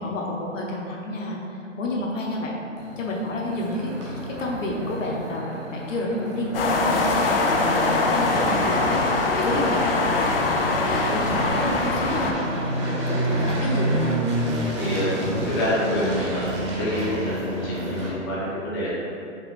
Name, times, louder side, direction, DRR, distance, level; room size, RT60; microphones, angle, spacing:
voice 1, 0.0-1.4 1.8-2.6 3.0-10.4 10.9-14.6, left 1 dB, 75° left, -2 dB, 0.9 m, -29 dB
sound 1, 2.8-18.1, right 1 dB, 25° right, 0.6 m, -30 dB
sound 2, 6.5-12.3, left 3 dB, 50° left, 0.5 m, -22 dB
voice 2, 14.7-15.1 15.5-18.9, left 1 dB, 25° left, -8 dB, 1.0 m, -27 dB
5.4 x 2.5 x 3.5 m, 2.7 s
hypercardioid pair, 155°, 38 cm